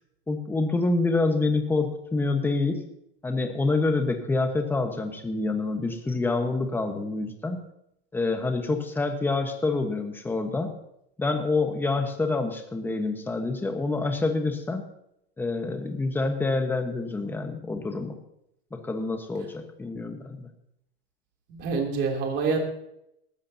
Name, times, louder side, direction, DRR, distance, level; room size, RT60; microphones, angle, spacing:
voice 1, 0.3-2.8 3.2-7.6 8.1-10.7 11.2-14.8 15.4-18.2 18.7-20.5, left 3 dB, 5° left, 5 dB, 1.3 m, -27 dB
voice 2, 21.5-22.6, right 5 dB, 35° right, 1 dB, 3.1 m, -26 dB
18.0 x 14.0 x 2.9 m, 0.79 s
supercardioid pair, 150°, 32 cm